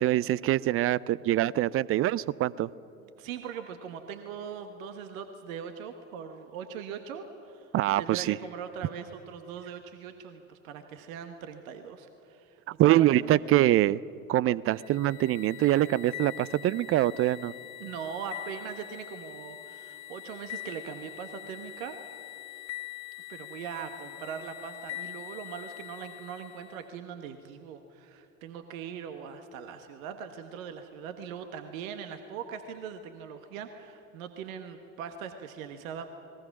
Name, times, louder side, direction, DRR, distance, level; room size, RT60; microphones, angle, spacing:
voice 1, 0.0-2.7 7.7-8.4 12.8-14.0 14.3-17.5, right 14 dB, 30° right, 22 dB, 0.5 m, -24 dB
voice 2, 3.0-13.4 17.8-22.0 23.3-36.1, right 7 dB, 65° right, 7 dB, 1.5 m, -41 dB
sound 1, 14.7-26.8, left 15 dB, 45° left, 2.0 m, -43 dB
29.0 x 20.5 x 6.1 m, 2.9 s
figure-of-eight pair, 70°, 43 cm